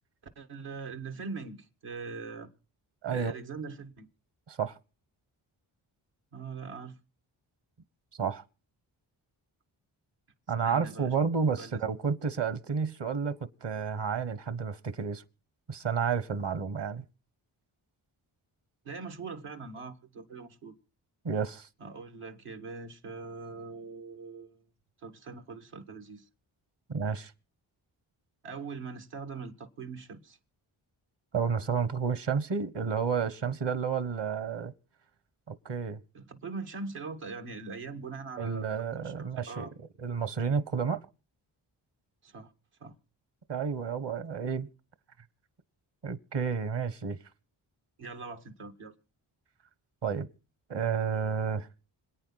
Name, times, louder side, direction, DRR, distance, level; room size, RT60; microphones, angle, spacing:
voice 1, 0.4-2.5 3.1-4.1 6.3-7.0 10.6-11.1 11.6-11.8 18.8-20.7 21.8-24.6 25.0-26.3 28.4-30.4 36.1-38.7 39.0-39.7 42.2-42.5 42.8-43.0 48.0-48.9, right 4 dB, 80° right, 2.0 m, -42 dB
voice 2, 3.0-3.3 4.5-4.7 8.2-8.4 10.5-13.3 13.6-15.2 15.7-17.0 21.2-21.7 26.9-27.3 31.3-34.7 35.5-36.0 38.4-39.7 40.0-41.0 43.5-44.7 46.0-47.2 50.0-50.3 50.7-51.7, right 6 dB, 55° right, 1.4 m, -31 dB
26.5 x 8.9 x 4.2 m
supercardioid pair, 40°, 50 cm